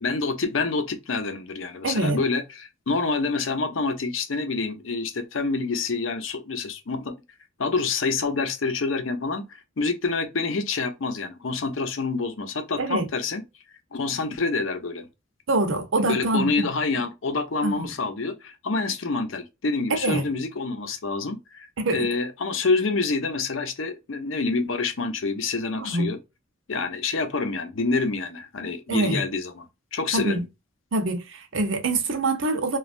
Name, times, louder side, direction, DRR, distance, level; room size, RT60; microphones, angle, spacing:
voice 1, 0.0-7.1 7.6-9.5 9.8-13.4 13.9-15.1 16.0-26.2 26.7-29.6 29.9-30.4, left 3 dB, 75° left, 0.7 m, -27 dB
voice 2, 1.8-2.2 12.8-13.1 15.5-16.7 17.6-17.9 19.9-20.2 21.8-22.1 25.8-26.1 28.9-29.2 30.1-30.4 30.9-32.8, right 2 dB, 70° right, 0.8 m, -25 dB
3.1 x 2.4 x 2.4 m
head